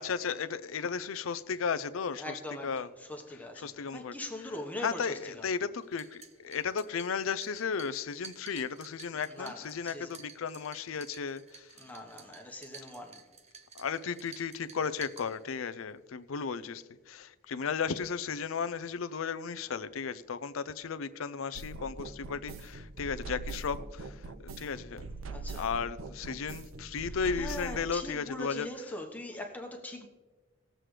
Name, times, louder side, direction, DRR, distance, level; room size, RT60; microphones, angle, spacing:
voice 1, 0.0-2.3 2.6-2.9 3.6-4.2 4.8-11.7 13.7-25.1 25.5-28.7, left 6 dB, 85° left, 0.5 m, -35 dB
voice 2, 2.2-5.5 9.2-10.2 11.8-13.3 24.6-24.8 25.3-25.7 27.0-30.1, left 1 dB, 10° left, 1.2 m, -42 dB
sound 1, 5.8-15.8, right 6 dB, 35° right, 0.7 m, -53 dB
sound 2, 21.5-27.9, right 3 dB, 85° right, 0.6 m, -42 dB
19.0 x 7.6 x 3.3 m
head